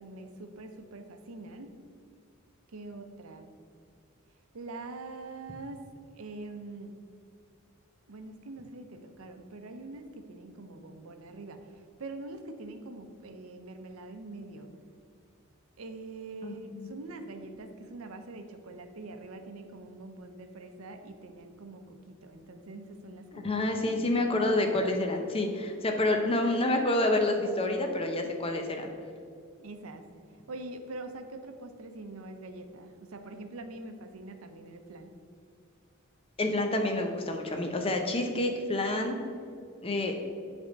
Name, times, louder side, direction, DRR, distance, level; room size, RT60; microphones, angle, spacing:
voice 1, 0.0-1.7 2.7-3.5 4.5-5.8 6.1-6.9 8.1-14.7 15.8-23.5 23.9-24.2 29.6-30.0 30.5-35.1, right 2 dB, 80° right, 7 dB, 0.6 m, -44 dB
voice 2, 16.4-16.9 23.3-28.9 36.4-39.2 39.8-40.1, left 2 dB, 25° left, 3 dB, 0.7 m, -28 dB
7.8 x 3.5 x 5.1 m, 2.3 s
head